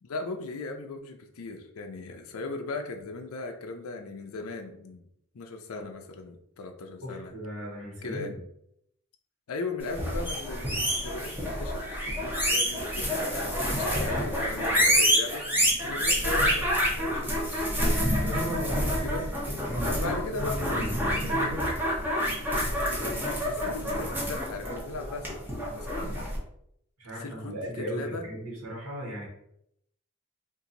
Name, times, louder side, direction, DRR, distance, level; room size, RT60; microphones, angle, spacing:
voice 1, 0.0-5.1 5.3-7.3 8.0-8.3 9.5-16.7 17.0-19.2 20.0-20.8 22.8-26.1 27.2-28.2, left 3 dB, 75° left, 5 dB, 0.5 m, -38 dB
voice 2, 7.0-8.4 18.2-21.7 27.0-29.3, equal, 80° right, -3 dB, 1.3 m, -37 dB
sound 1, 9.9-26.4, equal, 10° right, 0.8 m, -28 dB
2.8 x 2.6 x 3.8 m, 0.75 s
head